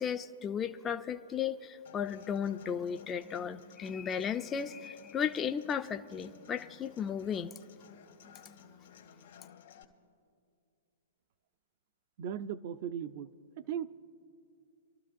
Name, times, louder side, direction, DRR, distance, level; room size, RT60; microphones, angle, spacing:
voice 1, 0.0-7.6, left 7 dB, 20° left, 8 dB, 0.4 m, -35 dB
Human voice / Acoustic guitar, 1.8-9.8, left 7 dB, 70° left, 1.3 m, -56 dB
voice 2, 12.2-13.3 13.6-13.9, right 9 dB, 55° right, 11 dB, 0.5 m, -37 dB
28.0 x 12.5 x 2.6 m, 2.4 s
hypercardioid pair, 115°, 0 cm